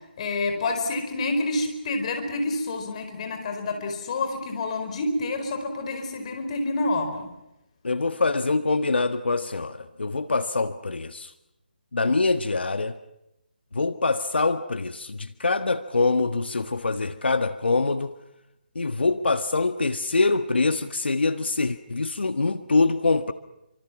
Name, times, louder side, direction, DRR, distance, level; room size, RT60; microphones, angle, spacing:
voice 1, 0.2-7.3, left 2 dB, 35° left, 6 dB, 4.5 m, -28 dB
voice 2, 7.8-11.3 11.9-13.0 13.7-18.1 18.7-23.3, left 3 dB, 80° left, 9 dB, 1.5 m, -24 dB
29.5 x 26.0 x 6.1 m, 0.87 s
figure-of-eight pair, 155°, 6 cm